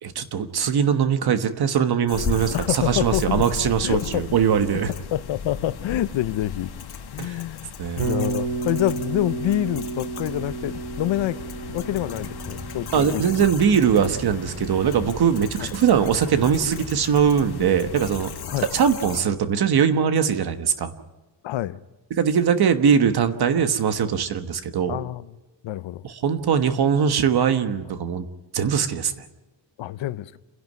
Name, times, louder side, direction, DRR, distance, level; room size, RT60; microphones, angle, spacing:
voice 1, 0.0-4.9 7.2-7.3 7.8-8.1 12.9-18.3 18.7-20.9 22.2-25.0 26.0-28.3 28.5-29.1, right 7 dB, 55° right, 1.4 m, -21 dB
sound 1, 2.1-19.2, left 6 dB, 55° left, 1.7 m, -36 dB
voice 2, 2.5-3.5 3.8-4.2 4.7-4.8 5.1-6.8 7.1-11.4 11.7-13.2 15.6-15.7 18.5-18.7 21.4-21.8 23.5-23.6 24.9-25.3 25.6-26.1 29.8-30.4, left 14 dB, 70° left, 0.7 m, -27 dB
Bass guitar, 8.0-16.1, right 4 dB, 80° right, 3.0 m, -33 dB
sound 2, 8.9-18.5, left 2 dB, ahead, 1.4 m, -42 dB
29.0 x 11.0 x 9.3 m
wide cardioid pair, 170°, 47 cm